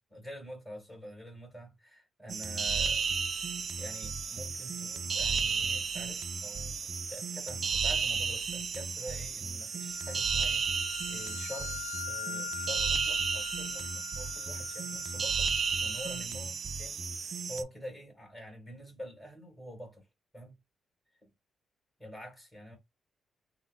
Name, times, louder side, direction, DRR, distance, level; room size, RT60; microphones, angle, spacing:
voice 1, 0.1-3.0 3.8-15.5 15.8-17.1 17.5-20.1 20.3-20.6 22.0-22.8, equal, 15° left, 2.0 m, -46 dB
sound 1, 2.3-17.6, right 5 dB, 50° right, 0.3 m, -33 dB
sound 2, 3.1-3.5 3.9-4.2 9.7-16.2, left 9 dB, 60° left, 1.3 m, -43 dB
3.3 x 2.2 x 2.6 m
cardioid pair, 110°, 0 cm